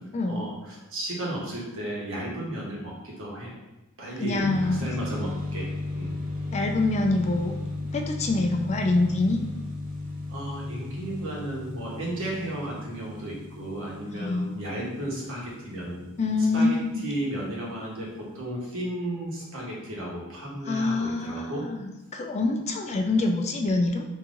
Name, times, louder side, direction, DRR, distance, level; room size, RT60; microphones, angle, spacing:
voice 1, 0.2-3.5 4.0-6.2 10.3-16.0 16.4-21.7, right 1 dB, 65° right, -4 dB, 1.2 m, -34 dB
voice 2, 4.2-4.9 6.5-7.5 7.9-9.4 14.1-14.5 16.2-17.0 20.6-24.0, left 2 dB, 30° left, 3 dB, 0.4 m, -25 dB
sound 1, 4.4-16.9, left 2 dB, 35° right, 1.0 m, -35 dB
3.6 x 3.0 x 3.8 m, 0.97 s
head